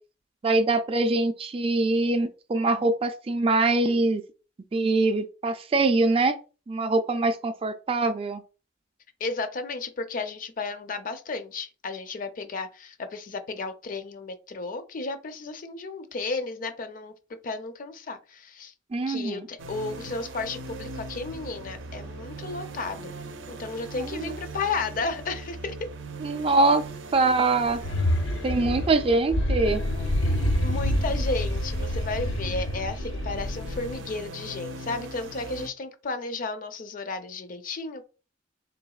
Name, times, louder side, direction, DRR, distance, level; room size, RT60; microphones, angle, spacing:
voice 1, 0.4-4.2 4.7-6.4 6.7-8.4 18.9-19.4 24.0-24.3 26.2-26.8 27.1-27.8 28.4-29.8, right 3 dB, 30° right, 0.3 m, -23 dB
voice 2, 9.2-17.1 17.4-18.7 19.1-23.2 23.5-25.9 30.6-38.1, left 3 dB, 45° left, 0.5 m, -33 dB
sound 1, 19.6-35.7, right 2 dB, 90° right, 0.5 m, -40 dB
sound 2, 27.7-34.0, left 1 dB, 90° left, 0.6 m, -27 dB
3.9 x 3.4 x 2.3 m
head